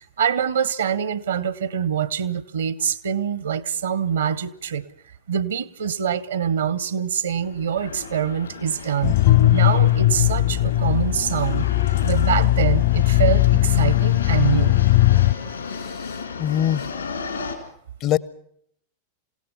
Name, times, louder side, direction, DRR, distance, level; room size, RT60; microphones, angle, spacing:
voice 1, 0.0-4.8 5.3-9.2 9.5-11.6 12.0-14.8, right 8 dB, 65° right, 0.9 m, -25 dB
sound 1, 7.4-17.5, left 5 dB, 75° left, 4.1 m, -35 dB
sound 2, 9.0-15.3, left 15 dB, 55° left, 1.1 m, -18 dB
voice 2, 15.7-16.9 18.0-18.2, left 11 dB, 35° left, 0.7 m, -24 dB
27.5 x 17.0 x 5.6 m
figure-of-eight pair, 90°, 0 cm